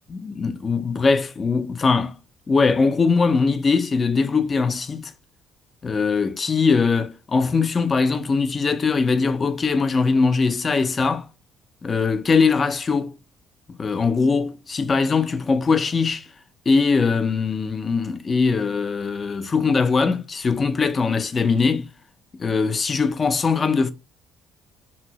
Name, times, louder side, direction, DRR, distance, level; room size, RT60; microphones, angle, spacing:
voice 1, 0.1-2.2 2.5-5.1 5.8-11.3 11.8-13.2 13.8-16.3 16.7-21.9 22.4-23.9, left 4 dB, 35° left, 0.4 m, -21 dB
2.7 x 2.6 x 2.8 m
cardioid pair, 95°, 0 cm